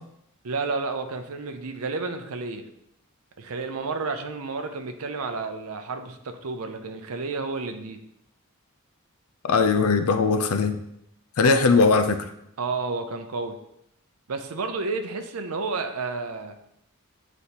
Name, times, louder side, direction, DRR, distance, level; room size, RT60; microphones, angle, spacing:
voice 1, 0.4-2.7 3.4-8.0 12.6-13.6 14.3-16.6, right 4 dB, 75° right, 6 dB, 0.6 m, -31 dB
voice 2, 9.4-10.8 11.4-12.3, left 4 dB, 75° left, 9 dB, 0.5 m, -20 dB
8.3 x 4.1 x 2.9 m, 0.78 s
head